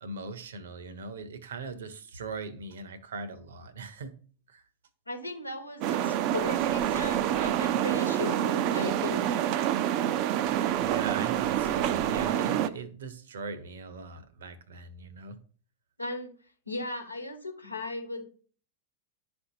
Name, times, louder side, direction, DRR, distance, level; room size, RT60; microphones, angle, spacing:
voice 1, 0.0-4.1 4.5-4.6 10.8-15.4, right 4 dB, 65° right, 0.8 m, -40 dB
voice 2, 5.1-9.6 16.0-16.3 16.7-18.2, left 2 dB, 85° left, 1.1 m, -37 dB
sound 1, 5.8-12.7, right 11 dB, 45° right, 0.4 m, -27 dB
11.0 x 4.3 x 2.7 m
figure-of-eight pair, 90°, 0 cm